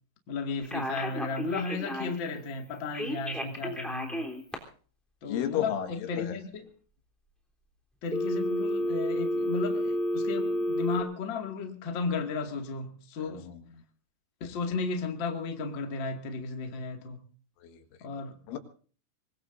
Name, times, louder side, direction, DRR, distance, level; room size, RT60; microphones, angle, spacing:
voice 1, 0.3-4.3 5.2-6.7 8.0-13.4 14.4-17.2 18.0-18.4, left 4 dB, 45° left, 1.5 m, -34 dB
Telephone, 0.6-2.3 2.9-4.5 8.1-11.0, equal, ahead, 2.2 m, -31 dB
voice 2, 5.3-6.4 13.2-13.6 17.6-17.8 18.5-18.6, left 10 dB, 75° left, 4.1 m, -33 dB
25.0 x 20.5 x 2.6 m
omnidirectional pair, 5.7 m